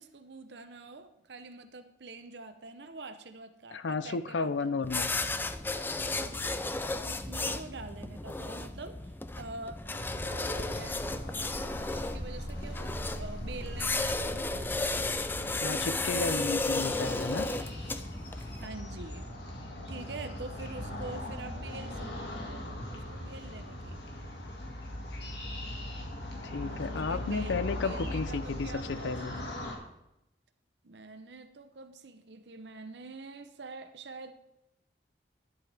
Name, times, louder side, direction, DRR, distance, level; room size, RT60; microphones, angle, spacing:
voice 1, 0.0-5.1 6.2-9.8 10.2-15.0 18.6-19.3 19.9-24.0 26.7-29.2 30.8-34.3, right 3 dB, 70° right, 8 dB, 0.8 m, -46 dB
voice 2, 3.7-5.1 15.5-17.5 26.5-29.4, left 4 dB, 85° left, 14 dB, 0.6 m, -33 dB
sound 1, 4.8-18.7, left 2 dB, 10° left, 0.3 m, -34 dB
sound 2, 9.9-29.7, left 1 dB, 65° left, 2.1 m, -40 dB
sound 3, 17.6-20.2, equal, 35° right, 2.9 m, -47 dB
11.5 x 10.5 x 3.4 m, 0.86 s
head